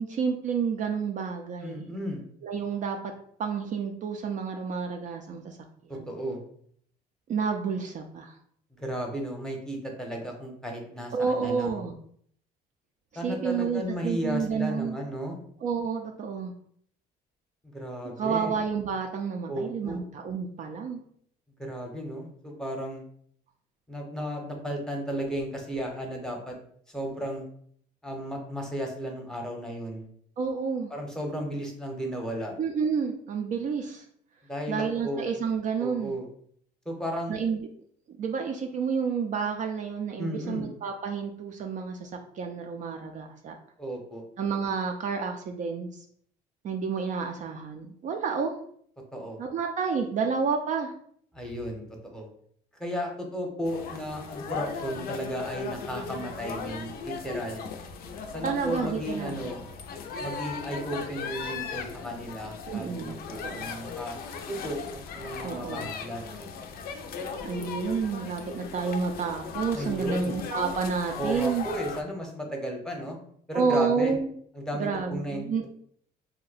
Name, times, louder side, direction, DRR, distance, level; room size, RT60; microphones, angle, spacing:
voice 1, 0.0-1.9 2.4-3.1 3.4-5.6 5.8-6.1 7.3-8.4 11.1-11.9 13.2-15.0 15.6-16.5 18.2-21.0 30.4-30.9 32.6-34.0 34.7-36.1 37.3-37.7 38.1-42.1 42.4-43.6 44.4-45.9 46.6-48.5 49.4-50.9 58.4-59.4 62.7-63.8 65.4-65.9 67.4-71.7 73.5-74.3 74.7-75.7, right 5 dB, 50° right, 3 dB, 0.4 m, -30 dB
voice 2, 1.6-2.2 5.9-6.4 8.8-11.8 13.1-15.4 17.6-18.5 19.5-20.0 21.6-23.0 23.9-26.6 26.9-27.5 28.0-30.1 30.9-32.5 34.4-35.2 35.8-36.2 36.8-37.4 40.2-40.7 43.8-44.2 49.1-49.4 51.3-51.8 52.1-52.3 52.8-57.7 58.3-59.6 60.2-64.2 64.5-66.5 69.7-70.4 71.2-73.2 73.5-74.1 74.5-75.4, equal, 5° left, 0 dB, 0.8 m, -34 dB
sound 1, 53.6-72.0, left 5 dB, 65° left, 0.4 m, -38 dB
2.7 x 2.1 x 4.0 m, 0.63 s
cardioid pair, 110°, 17 cm